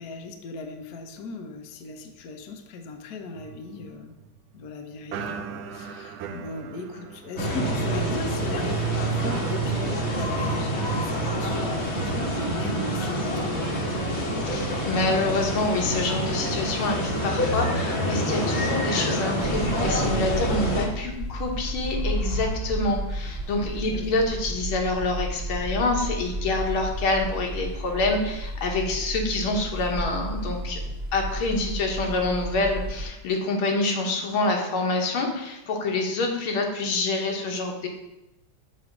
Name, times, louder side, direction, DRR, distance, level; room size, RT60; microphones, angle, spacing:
voice 1, 0.0-4.1 4.5-14.4 23.8-24.1, left 3 dB, 60° left, 4 dB, 1.0 m, -38 dB
sound 1, 3.3-4.7 5.1-15.5 15.8-16.0 16.6-16.7 19.4-20.2, right 8 dB, 80° right, 0.9 m, -33 dB
sound 2, 7.4-20.9, left 1 dB, 40° left, 1.1 m, -27 dB
voice 2, 14.4-30.8 31.1-37.9, left 2 dB, 80° left, 1 dB, 1.9 m, -27 dB
sound 3, 19.4-33.1, equal, 35° right, 1.1 m, -32 dB
6.9 x 3.1 x 5.8 m, 0.94 s
omnidirectional pair, 2.3 m